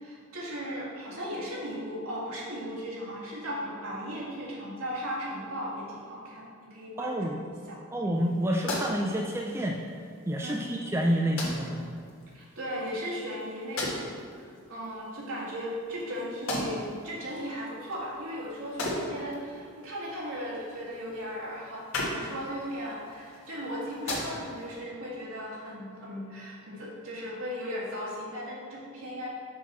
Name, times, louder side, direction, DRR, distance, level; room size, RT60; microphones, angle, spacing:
voice 1, 0.0-7.8 10.4-10.7 12.3-29.3, equal, 70° right, -6 dB, 1.8 m, -37 dB
voice 2, 7.0-7.4 7.9-9.8 10.3-11.9, equal, 10° right, -1 dB, 0.3 m, -28 dB
sound 1, 8.1-24.8, left 1 dB, 65° left, 1.5 m, -39 dB
6.2 x 6.0 x 4.0 m, 2.1 s
head